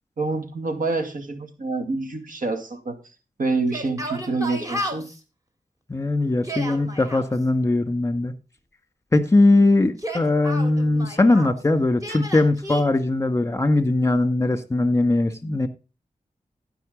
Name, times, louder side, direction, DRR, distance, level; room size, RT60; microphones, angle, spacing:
voice 1, 0.2-5.1, right 3 dB, 75° right, 2.2 m, -27 dB
Yell, 3.6-5.2 6.3-7.3 9.8-11.6 12.0-12.8, equal, 25° right, 3.1 m, -33 dB
voice 2, 5.9-8.3 9.1-15.7, left 2 dB, 20° left, 1.7 m, -20 dB
15.0 x 5.6 x 5.2 m
cardioid pair, 55°, 14 cm